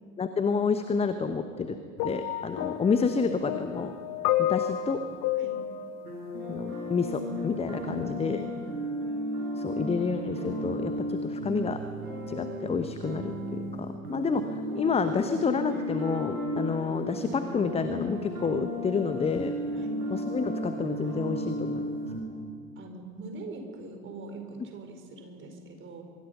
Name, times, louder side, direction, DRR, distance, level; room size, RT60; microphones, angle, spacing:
voice 1, 0.2-1.8 2.0-3.9 4.4-5.0 6.5-8.4 9.6-11.8 12.3-19.6 20.1-22.0, left 5 dB, 15° left, 9 dB, 1.0 m, -29 dB
sound 1, 2.0-7.1 8.0-8.2, left 12 dB, 40° left, 1.2 m, -31 dB
sound 2, 6.0-22.2, equal, 75° right, 5.8 m, -34 dB
voice 2, 7.8-8.4 19.7-20.0 22.8-26.0, right 3 dB, 25° right, 4 dB, 4.6 m, -42 dB
24.5 x 23.0 x 5.6 m, 2.3 s
figure-of-eight pair, 85°, 45 cm